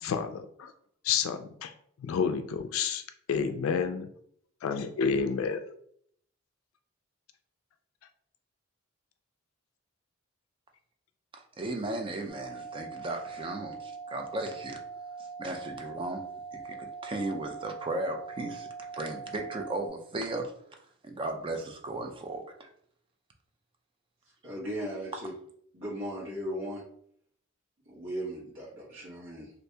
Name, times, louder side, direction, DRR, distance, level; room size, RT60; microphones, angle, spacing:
voice 1, 0.0-0.7 1.0-1.7 2.0-3.0 3.3-4.1 4.6-5.6, left 6 dB, 75° left, 8 dB, 0.3 m, -29 dB
voice 2, 11.3-14.8 15.4-18.7 18.9-20.5 21.0-22.7, right 2 dB, 25° right, 4 dB, 0.4 m, -36 dB
sound 1, 12.3-19.9, right 5 dB, 10° left, 1.4 m, -42 dB
voice 3, 24.4-25.3 25.7-26.8 27.9-29.5, equal, 65° right, -7 dB, 1.1 m, -37 dB
2.7 x 2.6 x 3.3 m, 0.65 s
head